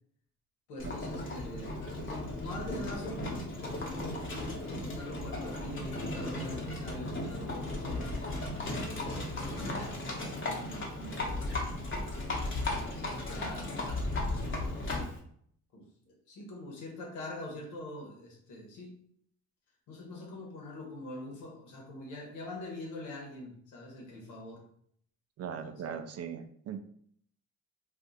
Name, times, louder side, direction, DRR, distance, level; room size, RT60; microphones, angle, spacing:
voice 1, 0.7-4.3 4.8-8.2 8.9-10.0 10.4-11.5 12.5-13.8 15.7-19.0 19.9-24.6 25.4-26.0, left 1 dB, 90° left, 0 dB, 1.1 m, -44 dB
Livestock farm animals working animals, 0.8-15.2, left 2 dB, 40° left, 1.0 m, -36 dB
voice 2, 25.4-26.8, right 7 dB, 55° right, 7 dB, 0.5 m, -39 dB
2.5 x 2.4 x 3.9 m, 0.65 s
cardioid pair, 90°, 30 cm